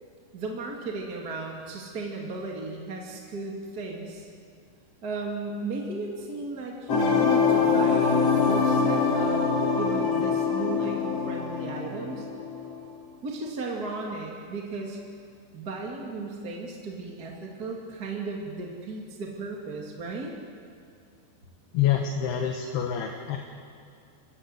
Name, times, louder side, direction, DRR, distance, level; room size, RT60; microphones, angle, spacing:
voice 1, 0.3-4.3 5.0-12.2 13.2-15.0 15.5-20.3, right 3 dB, 30° right, -1 dB, 1.9 m, -35 dB
sound 1, 6.9-12.7, left 5 dB, 40° left, 3.0 m, -24 dB
voice 2, 21.7-23.4, left 9 dB, 70° left, 3 dB, 3.0 m, -26 dB
28.0 x 15.0 x 8.0 m, 2.3 s
omnidirectional pair, 5.3 m